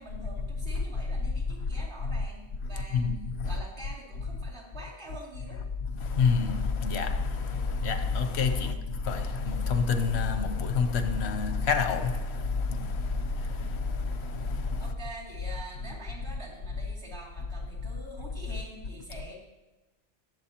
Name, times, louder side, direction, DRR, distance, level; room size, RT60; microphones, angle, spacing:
voice 1, 0.0-3.1 3.4-5.6 8.6-8.9 14.8-19.4, right 1 dB, 80° right, 3.1 m, -46 dB
voice 2, 2.9-3.6 6.0-14.9, left 5 dB, 85° left, 1.0 m, -28 dB
19.5 x 7.5 x 2.9 m
omnidirectional pair, 1.1 m